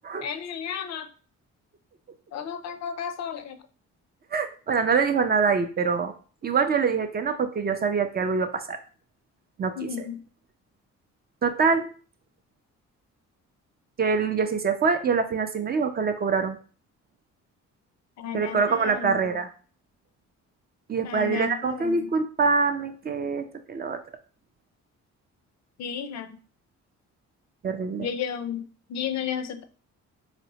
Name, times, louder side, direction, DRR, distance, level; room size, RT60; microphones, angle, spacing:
voice 1, 0.2-1.1 2.3-3.6 9.8-10.2 18.2-19.4 21.0-22.1 25.8-26.4 28.0-29.6, left 8 dB, 60° left, 9 dB, 0.5 m, -33 dB
voice 2, 4.3-6.1 6.4-8.8 9.6-9.7 11.4-11.9 14.0-16.6 18.3-19.5 20.9-24.0 27.6-28.1, right 5 dB, 35° right, 8 dB, 0.4 m, -24 dB
4.1 x 2.1 x 2.7 m, 0.39 s
cardioid pair, 90°, 30 cm